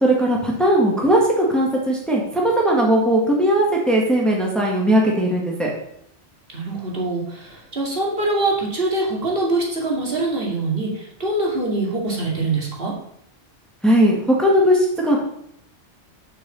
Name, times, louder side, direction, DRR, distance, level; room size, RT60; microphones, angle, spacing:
voice 1, 0.0-5.7 13.8-15.2, right 1 dB, ahead, -2 dB, 1.9 m, -18 dB
voice 2, 6.5-12.9, right 2 dB, 55° right, -2 dB, 2.5 m, -24 dB
6.7 x 6.6 x 7.1 m, 0.72 s
omnidirectional pair, 1.2 m